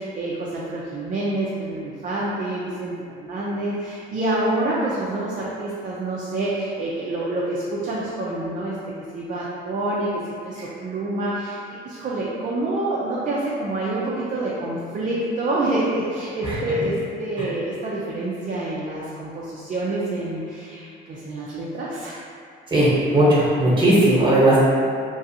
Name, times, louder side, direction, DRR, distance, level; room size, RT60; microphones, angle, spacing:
voice 1, 0.0-8.8 9.1-22.2, right 2 dB, 40° right, -6 dB, 0.5 m, -27 dB
voice 2, 22.7-24.6, right 1 dB, 25° right, -8 dB, 1.1 m, -17 dB
3.0 x 2.4 x 2.8 m, 2.3 s
cardioid pair, 90°, 20 cm